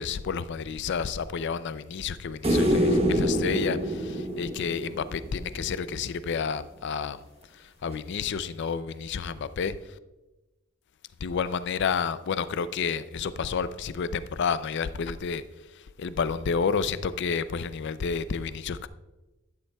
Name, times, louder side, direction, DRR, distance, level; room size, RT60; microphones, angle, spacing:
voice 1, 0.0-7.2 7.8-9.8 11.2-15.4 16.0-18.9, left 6 dB, 55° left, 0.4 m, -30 dB
sound 1, 2.4-5.7 8.3-8.4, equal, 30° right, 0.9 m, -25 dB
11.5 x 9.8 x 2.3 m
head